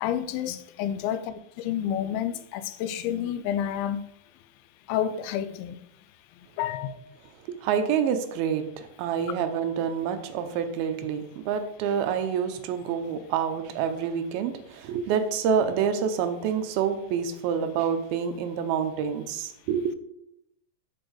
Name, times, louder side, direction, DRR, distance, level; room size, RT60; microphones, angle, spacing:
voice 1, 0.0-4.0 4.9-5.8 6.6-7.0, left 10 dB, 85° left, 2.4 m, -29 dB
voice 2, 7.5-19.9, right 7 dB, 90° right, 2.6 m, -27 dB
8.3 x 4.4 x 4.6 m
omnidirectional pair, 4.2 m